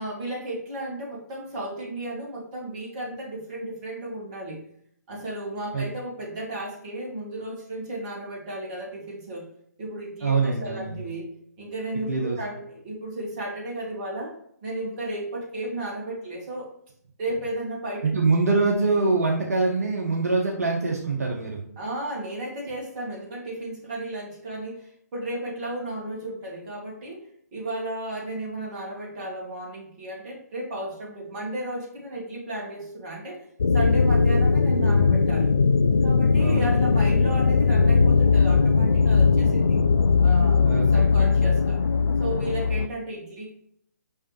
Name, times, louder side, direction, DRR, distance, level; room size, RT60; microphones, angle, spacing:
voice 1, 0.0-4.6 5.1-9.5 9.8-11.3 11.6-14.3 14.6-16.7 17.2-18.1 21.8-27.3 27.5-33.4 33.7-35.5 36.0-39.8 40.2-41.8 42.2-43.5, right 1 dB, 30° right, -3 dB, 2.0 m, -34 dB
voice 2, 10.2-11.0 12.1-12.4 18.0-21.6 36.4-36.8 40.6-41.3, right 3 dB, 60° right, 0 dB, 1.0 m, -24 dB
sound 1, 33.6-42.9, left 4 dB, 65° left, 0.4 m, -19 dB
5.5 x 5.5 x 3.1 m, 0.69 s
figure-of-eight pair, 135°, 9 cm